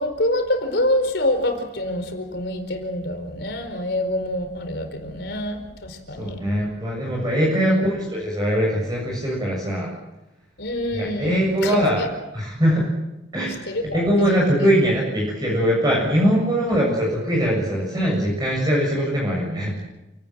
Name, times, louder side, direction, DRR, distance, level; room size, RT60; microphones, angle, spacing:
voice 1, 0.0-6.4 7.6-7.9 10.6-12.1 13.7-14.5 16.5-16.6, left 1 dB, 65° left, 6 dB, 4.7 m, -26 dB
voice 2, 6.2-9.9 10.9-12.1 12.3-12.9 13.3-19.8, equal, 20° right, -3 dB, 7.3 m, -21 dB
29.5 x 18.5 x 7.6 m, 0.94 s
head